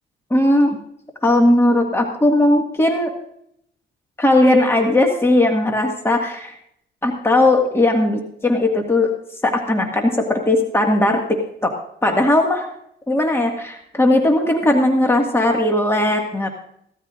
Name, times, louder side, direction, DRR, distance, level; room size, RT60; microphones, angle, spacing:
voice 1, 0.3-0.8 1.2-3.1 4.2-6.5 7.0-9.1 9.4-11.7 12.0-12.7 13.1-16.5, left 1 dB, 10° left, 2 dB, 1.9 m, -17 dB
17.0 x 13.0 x 2.5 m, 0.72 s
cardioid pair, 90°, 20 cm